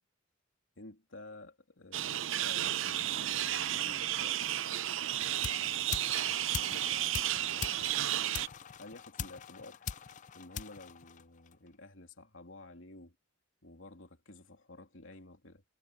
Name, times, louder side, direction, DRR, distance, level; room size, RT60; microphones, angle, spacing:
voice 1, 0.8-4.5 5.2-8.1 8.8-9.9 10.3-13.1 13.6-15.6, left 2 dB, 75° left, 2.9 m, -52 dB
sound 1, 1.9-8.5, right 12 dB, 75° right, 0.6 m, -33 dB
sound 2, 5.1-11.7, left 7 dB, 40° left, 0.4 m, -43 dB
head